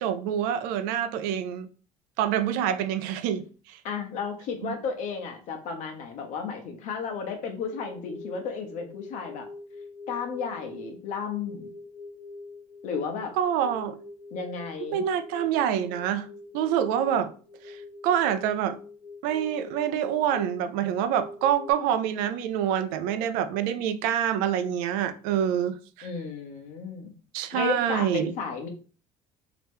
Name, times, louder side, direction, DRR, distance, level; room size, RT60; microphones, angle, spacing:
voice 1, 0.0-1.7 2.2-3.8 4.6-4.7 13.4-14.0 14.9-16.3 16.5-17.3 17.6-17.8 18.0-18.8 19.2-26.1 27.3-28.3, right 9 dB, 80° right, 0.5 m, -26 dB
voice 2, 3.8-9.5 10.1-11.7 12.8-13.3 14.3-15.0 26.0-27.1 27.5-28.7, left 5 dB, 60° left, 0.9 m, -33 dB
sound 1, 7.6-21.7, left 3 dB, 25° left, 0.5 m, -44 dB
3.1 x 2.9 x 3.5 m
cardioid pair, 145°, 15 cm